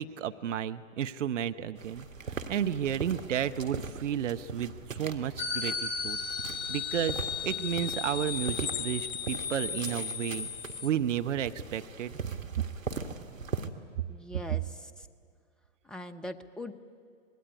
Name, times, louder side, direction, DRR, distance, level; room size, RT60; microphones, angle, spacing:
voice 1, 0.0-2.1 2.5-6.2 6.7-10.5 10.8-12.2 12.6-12.7, right 9 dB, 65° right, 10 dB, 1.0 m, -32 dB
sound 1, 1.8-13.7, right 5 dB, 85° right, 1.9 m, -41 dB
sound 2, 5.4-10.9, left 6 dB, 45° left, 1.3 m, -35 dB
voice 2, 14.1-14.6 15.9-16.7, left 1 dB, ahead, 7 dB, 0.8 m, -40 dB
26.0 x 20.5 x 9.9 m, 2.2 s
figure-of-eight pair, 110°, 39 cm